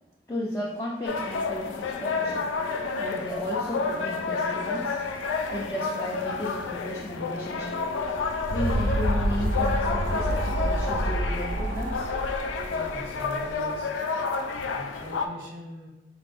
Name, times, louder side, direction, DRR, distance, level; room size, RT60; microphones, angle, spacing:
voice 1, 0.3-5.0 5.5-7.8 8.5-12.1 13.2-13.3 14.5-14.6, left 1 dB, 15° left, -5 dB, 0.4 m, -34 dB
sound 1, 1.0-15.3, left 4 dB, 90° left, 0.4 m, -30 dB
sound 2, 8.0-13.6, right 1 dB, 50° right, 0.4 m, -28 dB
voice 2, 12.7-13.9 14.7-15.9, equal, 65° right, -1 dB, 0.8 m, -41 dB
4.2 x 2.5 x 3.3 m, 1.0 s
head